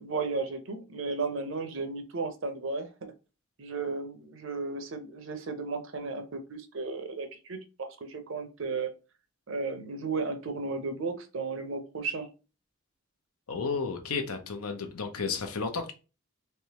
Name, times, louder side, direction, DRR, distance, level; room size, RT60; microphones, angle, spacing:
voice 1, 0.0-3.1 3.6-8.9 9.5-12.3, right 4 dB, 60° right, 0.6 m, -34 dB
voice 2, 13.5-15.9, left 4 dB, 85° left, 0.7 m, -32 dB
3.4 x 3.2 x 2.9 m
head